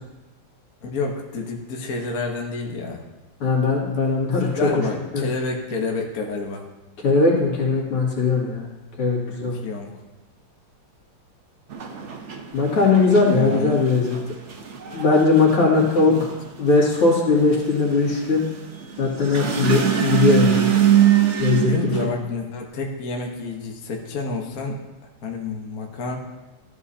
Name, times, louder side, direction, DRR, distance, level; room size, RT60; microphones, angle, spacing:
voice 1, 0.8-3.0 4.5-6.7 9.3-9.9 13.2-13.8 16.0-16.3 21.7-24.8 25.2-26.2, left 4 dB, 45° left, 0 dB, 1.4 m, -29 dB
voice 2, 3.4-4.7 5.1-5.3 7.0-8.7 9.0-9.6 12.5-14.2 14.9-16.3 16.6-18.4 19.0-20.7 21.4-21.7, left 3 dB, 90° left, -4 dB, 3.2 m, -19 dB
Freight train stops, 11.7-22.1, right 10 dB, 60° right, 0.7 m, -23 dB
14.0 x 9.7 x 2.8 m, 1.1 s
omnidirectional pair, 2.4 m